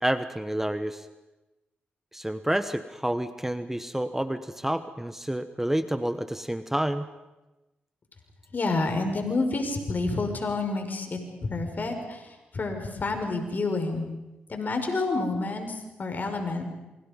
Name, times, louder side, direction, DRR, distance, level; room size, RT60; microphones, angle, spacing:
voice 1, 0.0-1.1 2.1-7.1, right 1 dB, 10° right, 11 dB, 1.2 m, -29 dB
voice 2, 8.5-11.2 11.5-14.0 14.5-16.6, left 3 dB, 50° left, 5 dB, 5.7 m, -29 dB
27.5 x 25.5 x 5.4 m, 1.0 s
supercardioid pair, 50°, 4 cm